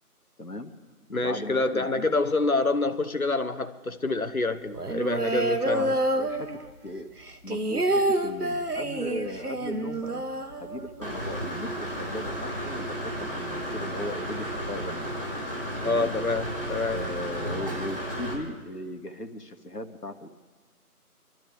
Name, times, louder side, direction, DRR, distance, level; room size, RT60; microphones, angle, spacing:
voice 1, 0.4-0.7 1.1-2.1 5.7-6.5 6.8-7.1 7.4-10.2 10.6-15.1 15.8-16.2 16.9-20.3, left 1 dB, 85° left, 6 dB, 1.8 m, -37 dB
voice 2, 1.1-6.0 15.8-17.0, left 3 dB, 65° left, 10 dB, 1.1 m, -27 dB
sound 1, 4.7-6.9 7.2-11.1 11.4-11.5 11.8-12.3, right 1 dB, 75° right, 1.4 m, -28 dB
Engine / Mechanisms, 11.0-18.3, equal, 35° right, 3.3 m, -33 dB
27.0 x 12.5 x 3.5 m, 1.4 s
figure-of-eight pair, 175°, 46 cm